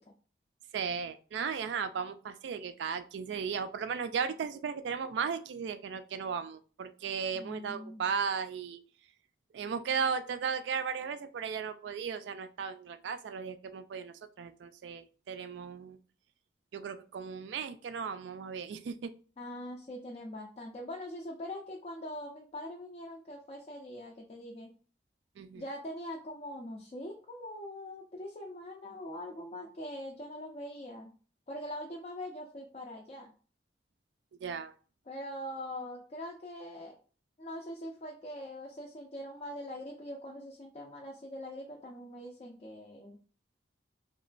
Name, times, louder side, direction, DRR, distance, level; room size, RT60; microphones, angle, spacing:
voice 1, 0.7-8.8 9.5-16.0 16.7-19.1 25.4-25.6 34.4-34.7, right 6 dB, 75° right, 10 dB, 0.3 m, -36 dB
voice 2, 7.3-8.0 19.4-24.7 25.5-31.1 31.5-33.3 35.1-37.0 37.4-43.2, left 1 dB, 35° left, -1 dB, 0.3 m, -42 dB
3.0 x 2.1 x 2.4 m, 0.39 s
head